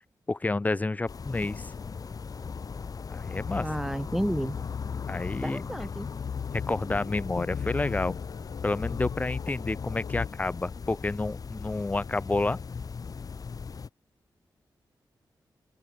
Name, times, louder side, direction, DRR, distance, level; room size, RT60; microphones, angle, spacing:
voice 1, 0.3-1.7 3.1-3.6 5.1-5.6 6.5-8.2 8.6-12.6, left 2 dB, 20° left, 0.5 m, -29 dB
sound 1, 1.1-13.9, left 5 dB, 50° left, 1.4 m, -38 dB
sound 2, 2.1-10.3, left 7 dB, 75° left, 1.0 m, -38 dB
voice 2, 3.6-4.6 5.4-6.1, equal, 5° right, 1.9 m, -31 dB
open air
wide cardioid pair, 90°, 8 cm